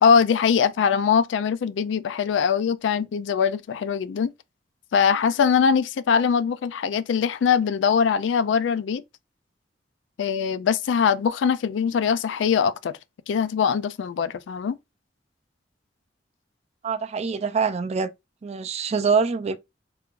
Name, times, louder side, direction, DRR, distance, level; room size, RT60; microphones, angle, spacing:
voice 1, 0.0-4.3 4.9-9.0 10.2-13.0 13.3-14.7, left 6 dB, 80° left, 0.3 m, -22 dB
voice 2, 16.8-18.1 18.4-19.6, right 5 dB, 35° right, 0.4 m, -24 dB
3.4 x 2.5 x 3.0 m
head